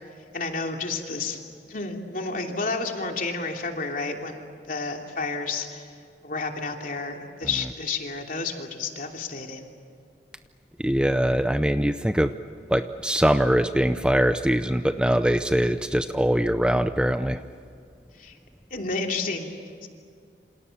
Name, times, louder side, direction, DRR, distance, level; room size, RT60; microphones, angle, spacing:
voice 1, 0.3-1.4 1.7-5.8 6.2-9.7 18.2-18.3 18.7-19.9, left 3 dB, 50° left, 2 dB, 3.0 m, -31 dB
voice 2, 10.8-12.3 12.7-17.4, equal, 5° right, 10 dB, 0.6 m, -22 dB
28.5 x 27.0 x 7.2 m, 2.3 s
head